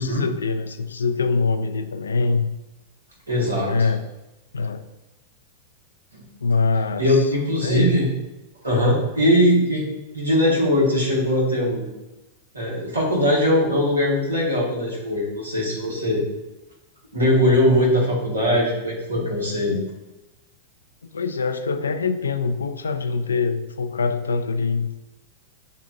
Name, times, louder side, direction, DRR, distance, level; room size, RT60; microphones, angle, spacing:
voice 1, 0.0-2.5 3.4-4.1 4.5-4.8 6.4-7.3 7.6-7.9 21.1-25.0, left 4 dB, 80° left, 9 dB, 0.3 m, -24 dB
voice 2, 3.3-3.9 6.1-6.2 7.0-8.1 8.6-9.9 10.1-11.9 12.5-16.2 17.1-19.8, left 1 dB, 90° right, -4 dB, 1.4 m, -20 dB
6.4 x 2.5 x 2.5 m, 1.0 s
figure-of-eight pair, 100°, 0 cm